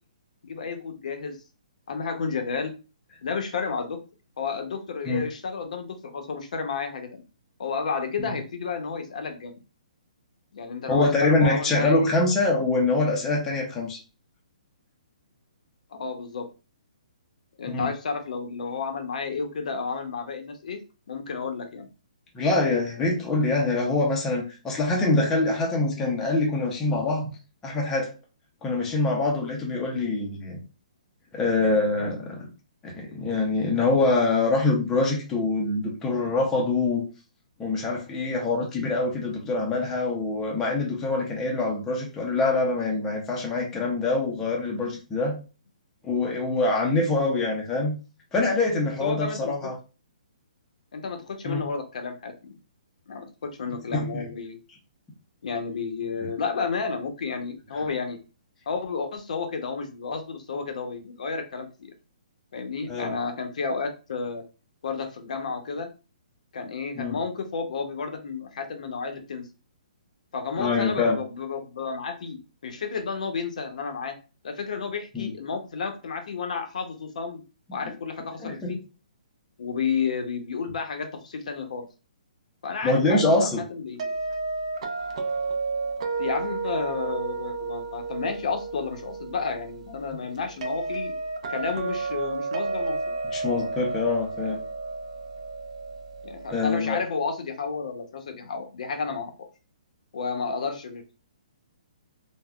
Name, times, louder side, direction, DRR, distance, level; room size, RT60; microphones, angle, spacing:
voice 1, 0.4-1.4 1.9-2.7 3.2-4.0 4.4-7.2 7.6-9.6 10.5-12.1 15.9-16.5 17.6-20.8 21.1-21.9 49.0-49.5 50.9-52.6 53.1-54.6 55.4-58.2 58.7-61.9 62.5-64.4 64.8-65.9 66.5-69.4 70.3-74.2 74.4-77.4 77.7-78.8 79.6-81.9 82.6-84.1 86.2-91.1 91.5-93.0 96.2-99.3 100.1-101.2, left 5 dB, 65° left, 6 dB, 0.6 m, -31 dB
voice 2, 10.9-14.0 17.7-17.9 22.3-27.3 27.6-28.1 28.6-30.6 31.3-32.5 32.8-37.0 37.6-45.4 46.0-47.9 48.3-49.8 51.4-51.6 53.9-54.2 56.2-56.3 62.9-63.1 67.0-67.2 70.6-71.2 75.1-75.3 77.8-77.9 78.4-78.7 82.8-83.6 93.3-94.6 96.5-97.0, left 3 dB, 10° left, -1 dB, 0.5 m, -24 dB
sound 1, 84.0-96.9, right 3 dB, 50° right, 0.5 m, -32 dB
3.5 x 2.1 x 2.2 m, 0.32 s
hypercardioid pair, 165°, 4 cm